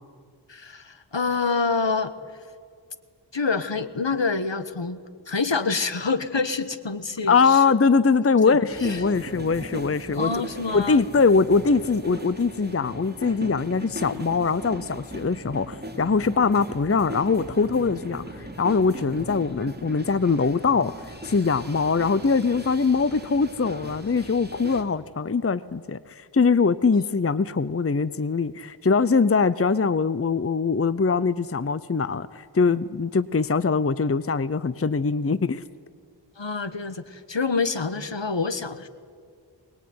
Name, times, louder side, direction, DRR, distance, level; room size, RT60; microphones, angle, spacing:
voice 1, 0.5-2.1 3.3-5.0 5.3-7.6 8.5-9.0 10.1-11.0 36.4-38.9, left 4 dB, 70° left, 12 dB, 1.4 m, -27 dB
voice 2, 7.3-10.3 10.7-35.6, left 4 dB, 30° left, 16 dB, 0.6 m, -22 dB
sound 1, 8.7-24.8, equal, 20° right, 2.8 m, -38 dB
23.0 x 20.5 x 9.5 m, 2.1 s
wide cardioid pair, 40°, 45 cm